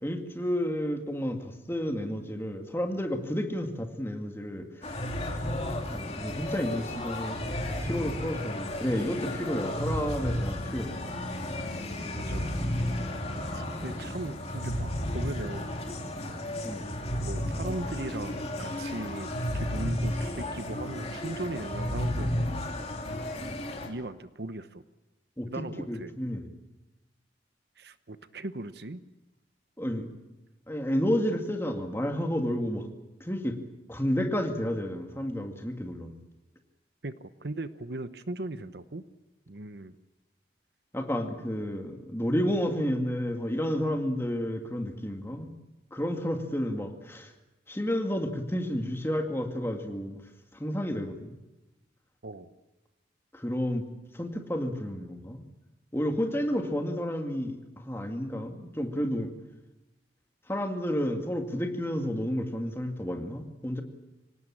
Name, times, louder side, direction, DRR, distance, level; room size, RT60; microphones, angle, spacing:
voice 1, 0.0-4.9 5.9-7.4 7.8-10.9 16.6-16.9 25.4-26.5 29.8-30.1 30.7-32.9 33.2-33.6 33.9-36.1 40.9-45.5 45.9-47.3 47.7-50.2 50.5-51.3 53.3-53.9 54.1-55.4 55.9-59.3 60.5-63.8, equal, 15° left, 4 dB, 2.2 m, -31 dB
sound 1, 4.8-23.9, left 1 dB, 35° left, 2.9 m, -33 dB
voice 2, 12.1-12.5 13.5-15.8 17.2-19.3 19.5-22.7 23.9-24.8 25.5-26.1 27.8-29.0 37.0-39.0 39.5-40.0 52.2-52.5, right 2 dB, 60° right, 12 dB, 0.9 m, -38 dB
26.0 x 18.0 x 8.7 m, 1.0 s
head